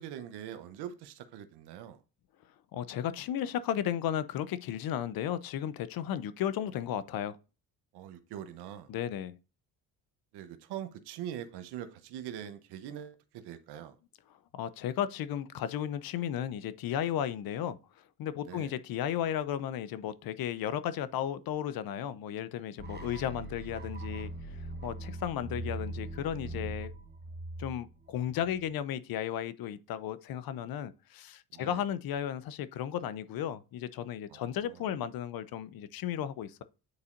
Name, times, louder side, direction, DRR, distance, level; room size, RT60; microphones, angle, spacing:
voice 1, 0.0-2.0 7.9-8.9 10.3-14.0 18.4-18.7 23.0-23.2 26.3-26.9 31.5-31.8 34.3-34.9, right 10 dB, 75° right, 1.0 m, -43 dB
voice 2, 2.7-7.4 8.9-9.4 14.5-17.8 18.2-24.3 24.8-26.9 27.6-36.6, left 10 dB, 60° left, 0.7 m, -34 dB
sound 1, 22.8-28.7, right 2 dB, 25° right, 1.1 m, -41 dB
9.6 x 4.1 x 2.5 m
supercardioid pair, 80°, 40 cm